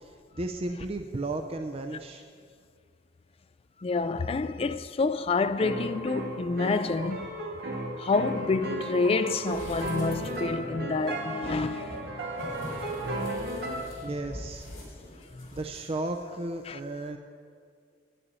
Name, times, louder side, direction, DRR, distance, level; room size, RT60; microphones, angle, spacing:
voice 1, 0.0-2.2 14.0-14.7 15.5-17.2, right 2 dB, 30° right, 0.5 m, -34 dB
voice 2, 3.8-7.3 8.0-11.9 15.4-15.5 16.7-16.8, left 3 dB, 30° left, 0.3 m, -28 dB
sound 1, 5.6-13.8, right 1 dB, 60° right, 2.2 m, -34 dB
sound 2, 9.4-10.7 11.3-15.9 16.2-16.3, left 1 dB, 50° left, 3.7 m, -43 dB
10.0 x 6.9 x 8.8 m
head